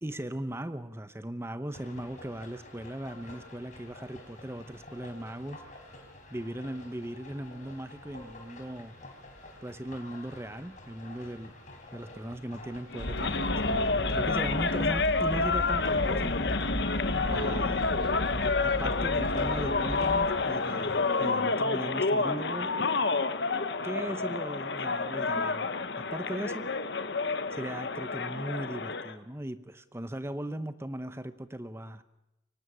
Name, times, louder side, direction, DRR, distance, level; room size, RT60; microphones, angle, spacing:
voice 1, 0.0-5.6 6.3-8.9 9.6-11.5 11.9-16.3 17.2-17.8 18.6-22.7 23.8-26.7 27.5-32.0, right 1 dB, 15° right, 12 dB, 0.8 m, -38 dB
sound 1, 1.7-21.3, left 1 dB, 40° left, 4.2 m, -49 dB
sound 2, 12.9-29.1, left 3 dB, 65° left, 1.0 m, -29 dB
Train, 13.0-20.2, equal, 55° right, 3.2 m, -36 dB
24.0 x 18.0 x 6.2 m, 0.90 s
head